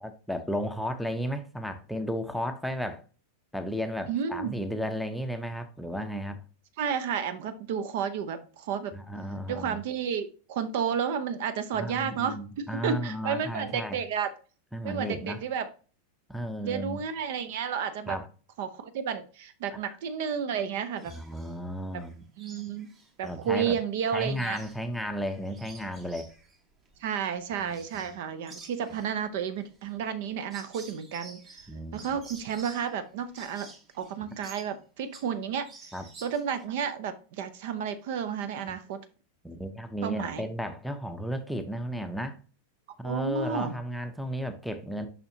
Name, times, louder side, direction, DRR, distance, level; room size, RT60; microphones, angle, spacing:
voice 1, 0.0-3.0 3.5-6.4 8.9-9.8 11.8-14.0 14.7-15.4 16.3-17.0 18.1-18.3 21.1-22.3 23.2-23.8 24.1-26.3 27.6-28.2 31.7-32.0 35.9-36.0 39.4-42.4 43.0-45.1, equal, ahead, 0.7 m, -34 dB
voice 2, 4.1-4.6 6.8-8.9 9.5-14.3 14.8-15.7 16.6-18.2 18.6-21.1 22.4-22.9 23.2-24.6 27.0-31.6 31.9-33.7 33.9-35.9 36.2-39.0 40.0-40.5 43.0-43.7, right 7 dB, 50° right, 0.6 m, -31 dB
sound 1, 21.0-21.6 22.0-23.8 24.1-28.2 28.5-35.4 35.6-36.6, right 3 dB, 25° right, 1.4 m, -51 dB
6.7 x 5.7 x 2.7 m
figure-of-eight pair, 90°, 0 cm